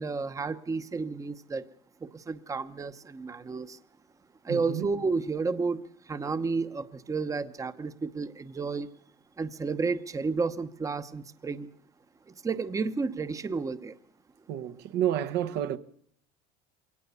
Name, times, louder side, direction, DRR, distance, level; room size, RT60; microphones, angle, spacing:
voice 1, 0.0-1.6 2.0-3.8 4.4-5.8 6.1-8.9 9.4-11.7 12.4-13.9, right 4 dB, 15° right, 1.0 m, -31 dB
voice 2, 4.5-4.9 14.5-15.8, right 11 dB, 65° right, 1.2 m, -30 dB
22.5 x 18.0 x 6.9 m
supercardioid pair, 115°, 18 cm